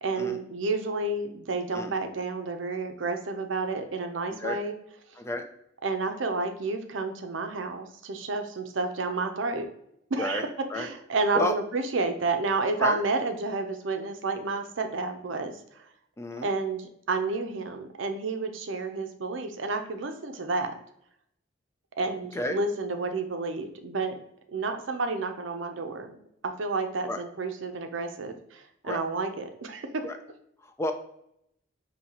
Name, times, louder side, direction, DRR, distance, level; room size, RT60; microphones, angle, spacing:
voice 1, 0.0-4.7 5.8-9.7 10.1-10.5 10.7-15.6 16.4-20.7 22.0-24.2 24.5-26.2 26.4-30.0, right 3 dB, 75° right, 6 dB, 0.6 m, -30 dB
voice 2, 5.2-5.5 10.2-10.4 10.7-10.9 11.3-11.6 12.8-13.0 16.2-16.5 22.3-22.6 27.1-27.2 28.8-29.0 30.0-30.2 30.6-30.9, left 1 dB, 15° left, 6 dB, 0.4 m, -31 dB
5.5 x 2.8 x 2.8 m, 0.74 s
head